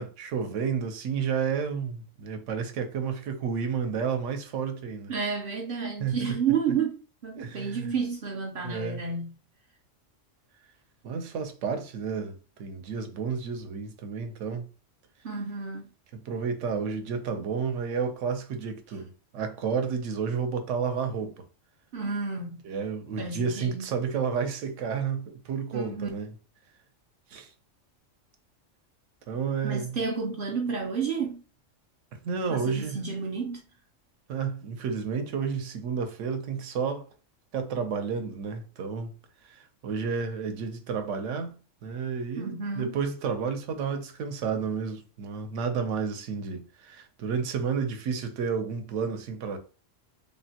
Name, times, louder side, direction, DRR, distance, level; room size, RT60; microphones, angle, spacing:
voice 1, 0.0-5.1 6.0-6.4 7.4-7.9 8.6-9.0 11.0-14.7 16.1-21.4 22.6-26.3 27.3-27.5 29.3-30.0 32.2-33.0 34.3-37.1 37.5-39.1 39.4-49.6, right 6 dB, 80° right, 0.9 m, -31 dB
voice 2, 5.1-9.3 15.2-15.8 21.9-22.6 23.2-23.9 25.7-26.1 29.6-31.4 32.5-33.6 42.4-42.9, right 5 dB, 60° right, 0.6 m, -31 dB
3.5 x 2.1 x 2.7 m
omnidirectional pair, 1.3 m